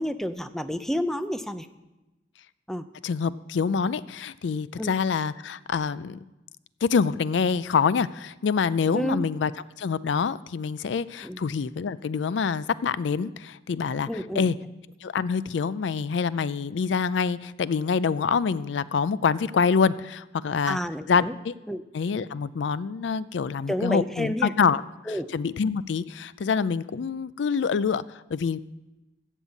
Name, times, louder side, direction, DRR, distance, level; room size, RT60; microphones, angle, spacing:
voice 1, 0.0-1.7 2.7-2.9 4.8-4.9 8.9-9.2 11.2-11.4 14.1-14.5 20.7-21.3 21.7-21.8 23.7-24.5 25.1-25.3, equal, ahead, 10 dB, 0.5 m, -29 dB
voice 2, 3.0-6.2 6.8-9.5 9.8-14.6 15.0-20.8 21.1-21.5 21.9-28.6, left 5 dB, 85° left, 17 dB, 0.4 m, -26 dB
14.5 x 5.5 x 8.3 m, 1.0 s
head